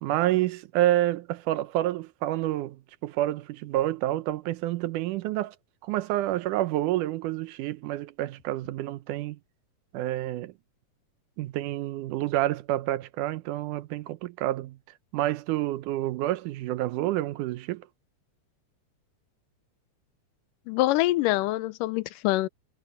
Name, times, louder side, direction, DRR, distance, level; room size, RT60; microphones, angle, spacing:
voice 1, 0.0-5.6 5.8-9.4 9.9-10.5 11.4-14.8 15.1-17.8, right 14 dB, 80° right, 2.2 m, -28 dB
voice 2, 20.7-22.5, left 17 dB, 90° left, 2.3 m, -25 dB
omnidirectional pair, 3.7 m